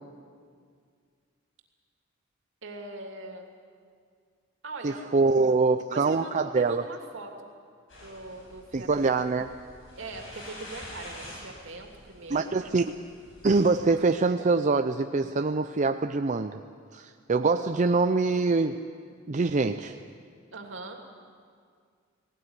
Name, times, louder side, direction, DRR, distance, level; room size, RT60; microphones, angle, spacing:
voice 1, 2.6-3.5 4.6-7.5 8.0-9.2 10.0-12.5 20.5-21.0, right 2 dB, 70° right, 3 dB, 2.8 m, -42 dB
voice 2, 4.8-6.8 8.7-9.5 12.3-12.8 13.4-16.6 16.9-18.8 19.3-19.9, right 3 dB, 40° right, 7 dB, 0.5 m, -24 dB
sound 1, 7.9-13.6, left 1 dB, 70° left, 7.9 m, -47 dB
18.5 x 18.0 x 9.7 m, 2.1 s
head